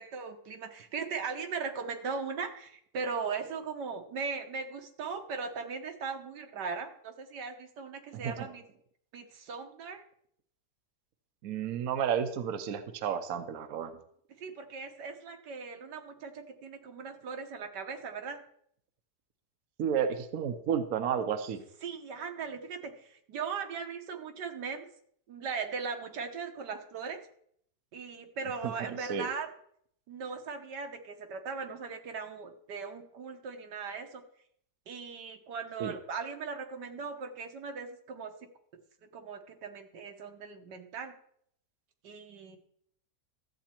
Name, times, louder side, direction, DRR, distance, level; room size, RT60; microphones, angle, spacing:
voice 1, 0.0-8.6 9.1-10.0 14.4-18.4 21.8-24.9 25.3-27.2 27.9-29.5 30.1-34.2 34.9-38.3 39.1-41.1 42.0-42.6, right 5 dB, 80° right, 6 dB, 1.7 m, -38 dB
voice 2, 8.1-8.5 11.4-13.9 19.8-21.6 28.6-29.3 35.8-35.9, right 8 dB, 65° right, 8 dB, 1.1 m, -32 dB
13.5 x 8.0 x 4.4 m, 0.67 s
omnidirectional pair, 1.8 m